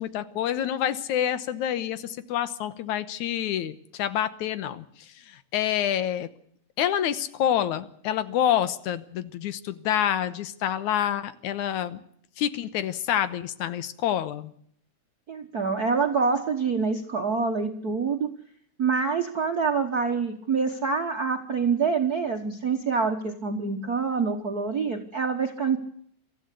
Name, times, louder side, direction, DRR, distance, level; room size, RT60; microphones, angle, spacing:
voice 1, 0.0-6.3 6.8-12.0 12.4-14.5, left 10 dB, 80° left, 13 dB, 2.4 m, -27 dB
voice 2, 15.3-18.3 18.8-25.8, right 5 dB, 55° right, 4 dB, 1.0 m, -26 dB
23.5 x 14.5 x 8.4 m, 0.65 s
omnidirectional pair, 3.4 m